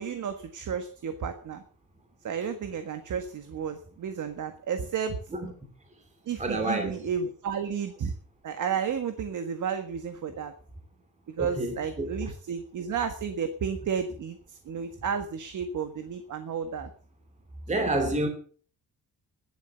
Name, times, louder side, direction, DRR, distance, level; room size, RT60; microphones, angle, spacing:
voice 1, 0.0-1.6 2.2-5.2 6.2-8.1 8.4-10.5 11.4-16.9 17.7-18.1, right 7 dB, 55° right, 1.6 m, -32 dB
voice 2, 6.4-7.0 11.4-12.1 17.7-18.3, right 2 dB, 20° right, 2.7 m, -28 dB
14.5 x 11.5 x 6.9 m
cardioid pair, 170°, 36 cm